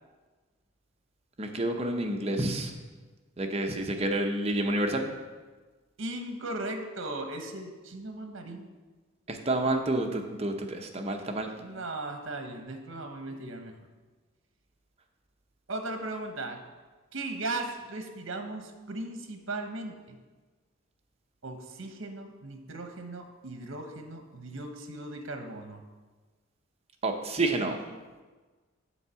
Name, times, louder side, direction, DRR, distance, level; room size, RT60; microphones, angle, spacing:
voice 1, 1.4-2.7 3.4-5.1 9.3-11.5 27.0-27.8, right 1 dB, 30° right, 4 dB, 0.7 m, -29 dB
voice 2, 6.0-8.8 11.6-13.7 15.7-16.6 17.1-20.2 21.4-25.8, right 2 dB, 70° right, 5 dB, 0.9 m, -37 dB
7.1 x 4.6 x 6.8 m, 1.3 s
head